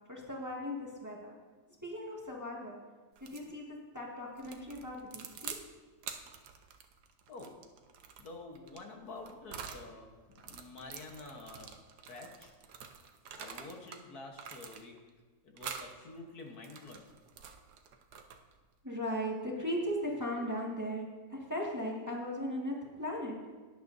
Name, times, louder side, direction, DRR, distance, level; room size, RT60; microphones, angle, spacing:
voice 1, 0.1-1.3 1.8-2.8 3.2-5.6 18.8-23.5, equal, 10° right, -3 dB, 1.7 m, -38 dB
sound 1, 3.2-3.5 4.4-5.7 6.0-9.9 10.3-14.0 14.3-15.1 15.6-15.9 16.5-18.6, right 7 dB, 75° right, 1.4 m, -47 dB
voice 2, 7.3-7.7 8.2-12.5 13.3-15.0 15.4-17.1, left 3 dB, 65° left, 2 dB, 1.7 m, -49 dB
18.0 x 10.5 x 2.7 m, 1.4 s
omnidirectional pair, 1.8 m